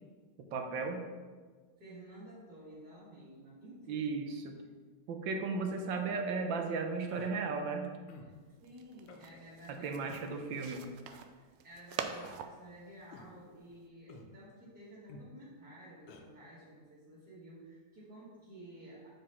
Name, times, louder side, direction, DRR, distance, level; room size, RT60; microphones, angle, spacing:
voice 1, 0.5-1.0 3.9-4.6 5.1-7.9 9.8-10.8, right 4 dB, 70° right, 4 dB, 1.4 m, -35 dB
voice 2, 1.8-4.1 8.2-8.3 8.6-10.0 11.3-19.1, right 1 dB, 50° right, -12 dB, 2.6 m, -53 dB
Human voice, 7.1-7.3 8.1-8.3 9.1-9.3 10.1-10.3 11.1-11.2 12.1-12.4 13.1-13.3 14.1-14.3 15.1-15.3 16.1-16.2, left 4 dB, 90° left, 1.6 m, -52 dB
sound 1, 8.3-13.9, right 7 dB, 85° right, 1.4 m, -46 dB
6.2 x 4.8 x 5.5 m, 1.5 s
omnidirectional pair, 2.3 m